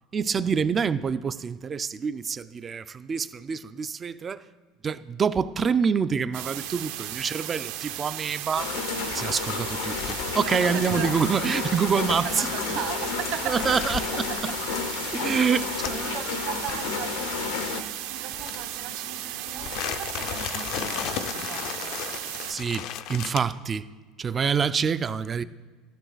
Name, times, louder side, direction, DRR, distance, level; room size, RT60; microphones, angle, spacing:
voice 1, 0.1-4.4 4.8-8.7 9.1-12.5 13.5-14.3 15.1-16.2 22.5-23.9 24.2-25.4, right 6 dB, 20° right, 0.3 m, -26 dB
sound 1, 6.3-22.5, right 12 dB, 75° right, 0.9 m, -35 dB
sound 2, 8.5-17.8, left 7 dB, 80° left, 0.9 m, -32 dB
sound 3, 9.1-16.1 16.5-16.8 18.3-19.0 19.5-23.4, left 10 dB, 50° left, 0.5 m, -36 dB
voice 2, 10.4-11.1 12.1-13.6 16.0-22.0, right 10 dB, 55° right, 1.2 m, -38 dB
13.0 x 12.5 x 4.0 m
cardioid pair, 165°, 0 cm